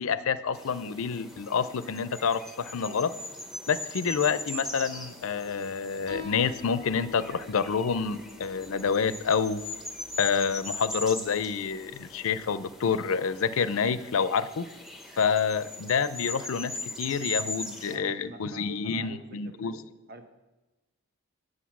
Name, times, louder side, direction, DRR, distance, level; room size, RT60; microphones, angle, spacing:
voice 1, 0.0-3.1 3.7-9.6 10.2-14.7 15.2-16.7 17.0-19.7, left 6 dB, 65° left, 15 dB, 0.5 m, -28 dB
sound 1, 0.5-18.0, left 2 dB, ahead, 0.7 m, -40 dB
Piano, 6.1-13.1, left 6 dB, 75° right, 2.6 m, -48 dB
voice 2, 17.9-19.8 20.1-20.3, right 2 dB, 45° right, 7 dB, 0.9 m, -46 dB
9.4 x 6.5 x 5.9 m, 1.1 s
head